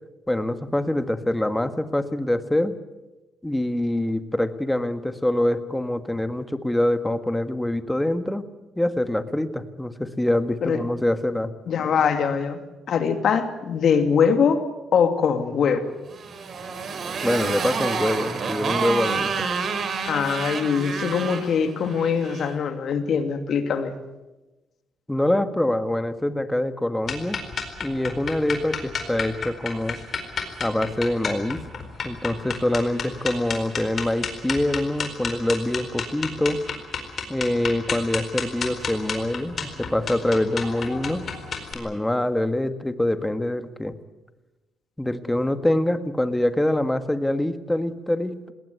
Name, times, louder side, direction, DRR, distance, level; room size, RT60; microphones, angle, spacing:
voice 1, 0.3-2.7 3.4-8.4 8.7-11.5 17.2-19.5 25.1-27.4 27.8-30.0 30.6-31.6 32.0-36.8 37.3-41.3 41.7-43.9 45.0-48.5, left 1 dB, 10° left, 10 dB, 1.5 m, -25 dB
voice 2, 11.7-12.6 12.9-14.6 14.9-15.8 20.0-23.9, left 6 dB, 65° left, 8 dB, 2.5 m, -22 dB
Motorcycle, 16.1-22.5, right 5 dB, 55° right, 3.4 m, -29 dB
sound 1, 27.0-41.7, left 5 dB, 50° left, 4.4 m, -31 dB
20.5 x 18.0 x 9.5 m, 1.1 s
cardioid pair, 90°, 0 cm